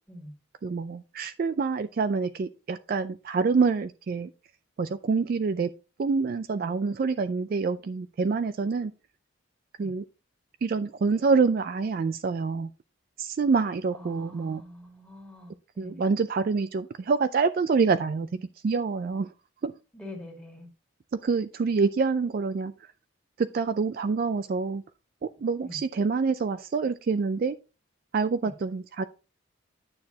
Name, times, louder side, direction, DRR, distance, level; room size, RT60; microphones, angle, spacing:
voice 1, 0.6-4.3 4.8-5.7 6.0-8.9 9.8-10.0 10.6-12.7 13.2-14.6 15.8-19.3 19.6-19.7 21.1-22.9 23.4-24.8 25.2-27.6 28.1-29.0, right 4 dB, 45° right, 0.3 m, -26 dB
voice 2, 13.9-16.2 19.9-20.7 25.6-25.8 28.4-28.5, left 1 dB, 5° left, 2.2 m, -44 dB
9.4 x 6.8 x 2.7 m
head